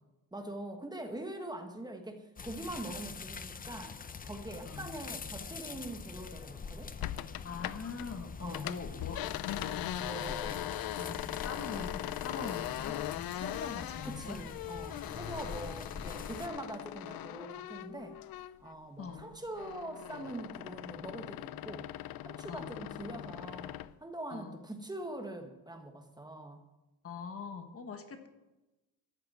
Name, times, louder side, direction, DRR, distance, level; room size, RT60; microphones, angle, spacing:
voice 1, 0.3-6.9 8.4-8.7 10.0-10.6 11.0-11.3 11.7-12.5 14.0-18.2 18.6-21.9 22.2-26.6, right 1 dB, 10° right, 5 dB, 1.2 m, -43 dB
sound 1, 2.4-16.5, left 5 dB, 25° left, 0.6 m, -45 dB
voice 2, 4.6-5.0 7.4-10.6 11.4-13.0 13.3-14.4 19.0-19.3 22.5-22.8 24.3-24.6 27.0-28.3, left 5 dB, 40° left, 7 dB, 1.4 m, -43 dB
sound 2, 7.0-8.1 8.4-18.7 19.1-23.9, left 13 dB, 85° left, 0.6 m, -40 dB
14.0 x 6.9 x 9.1 m, 1.0 s
cardioid pair, 155°, 35 cm